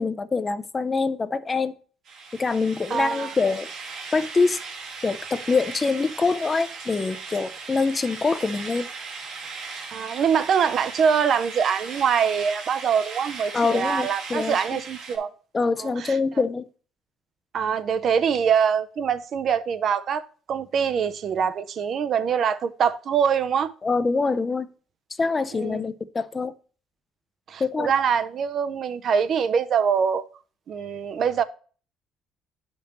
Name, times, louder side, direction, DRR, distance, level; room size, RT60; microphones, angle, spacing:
voice 1, 0.0-1.7 2.3-3.7 4.1-4.6 5.0-8.9 13.5-14.8 15.5-16.6 23.8-24.7 25.2-26.5 27.6-27.9, left 4 dB, 20° left, 0.4 m, -24 dB
sound 1, 2.1-15.2, right 4 dB, 65° right, 1.5 m, -38 dB
voice 2, 2.9-3.3 9.9-15.3 15.8-16.2 17.5-23.7 25.5-25.8 27.5-30.2 30.7-31.4, right 7 dB, 45° right, 0.4 m, -24 dB
10.0 x 5.2 x 2.9 m
cardioid pair, 135°, 0 cm